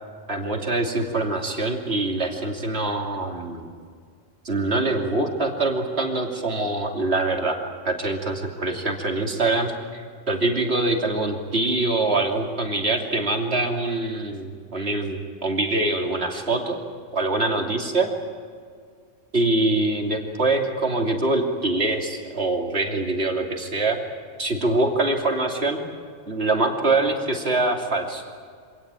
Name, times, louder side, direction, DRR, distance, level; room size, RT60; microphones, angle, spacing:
voice 1, 0.3-3.7 4.4-7.6 7.8-16.8 17.1-18.1 19.3-24.0 24.4-25.8 26.3-28.2, right 2 dB, 50° right, 2 dB, 3.1 m, -24 dB
26.0 x 18.0 x 9.1 m, 2.1 s
omnidirectional pair, 1.4 m